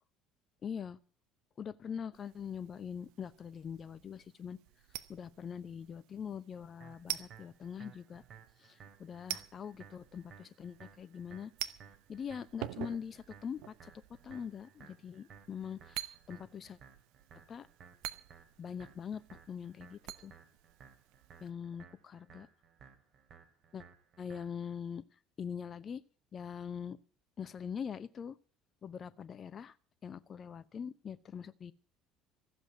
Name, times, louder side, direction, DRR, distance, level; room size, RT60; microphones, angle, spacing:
voice 1, 0.6-1.0 1.6-4.6 5.1-8.2 8.6-11.5 12.1-13.9 14.2-16.8 17.5-17.7 18.6-19.2 19.5-20.3 21.4-22.5 23.7-23.8 24.2-25.0 25.4-26.0 26.3-27.0 27.4-28.4 28.8-29.7 30.0-31.7, left 7 dB, 40° left, 16 dB, 1.0 m, -43 dB
sound 1, 2.1-21.5, right 14 dB, 65° right, 0.9 m, -48 dB
sound 2, 6.8-24.8, right 7 dB, 45° right, 3.0 m, -58 dB
15.0 x 7.9 x 9.1 m, 0.41 s
hypercardioid pair, 60°, 0 cm